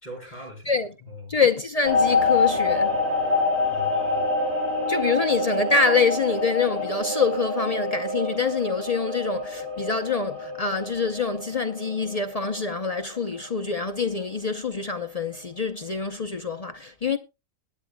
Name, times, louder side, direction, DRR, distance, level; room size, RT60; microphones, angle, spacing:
voice 1, 0.0-0.7 1.0-1.4 3.7-4.3, left 1 dB, 30° left, 4.4 m, -41 dB
voice 2, 1.3-3.0 4.9-17.2, left 5 dB, 55° left, 0.4 m, -25 dB
sound 1, 1.8-13.2 13.5-13.9, left 3 dB, 45° right, 3.4 m, -26 dB
21.0 x 9.6 x 2.2 m
omnidirectional pair, 1.6 m